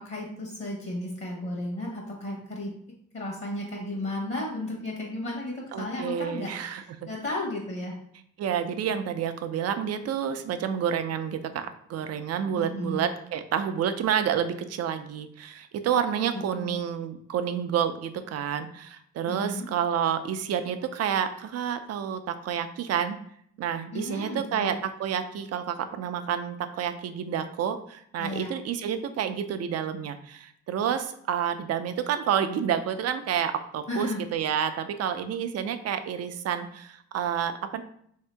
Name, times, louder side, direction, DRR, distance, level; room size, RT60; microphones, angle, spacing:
voice 1, 0.0-2.7 3.1-6.5 6.8-8.0 12.5-13.0 16.1-16.3 16.6-16.8 19.3-19.7 23.9-24.8 28.2-28.5 33.9-34.2, left 1 dB, 40° left, -1 dB, 1.0 m, -34 dB
voice 2, 5.7-7.1 8.4-23.2 23.6-37.8, right 8 dB, 55° right, 9 dB, 0.4 m, -29 dB
3.5 x 2.8 x 3.3 m, 0.67 s
cardioid pair, 90°, 30 cm